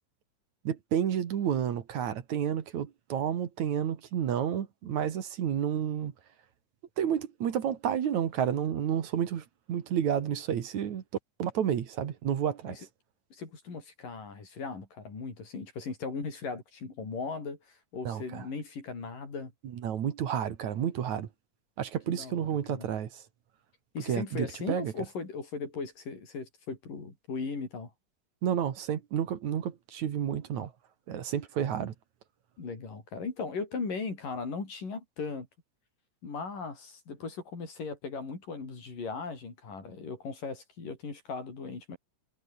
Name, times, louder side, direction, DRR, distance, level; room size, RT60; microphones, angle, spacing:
voice 1, 0.6-6.1 7.0-11.0 11.4-12.8 18.0-18.4 19.7-21.3 21.8-23.2 24.1-24.9 28.4-30.7 31.1-31.9, right 9 dB, 65° right, 3.0 m, -30 dB
voice 2, 13.3-19.5 22.1-22.9 23.9-27.9 32.6-35.5 36.2-42.0, left 4 dB, 80° left, 7.8 m, -38 dB
omnidirectional pair, 3.8 m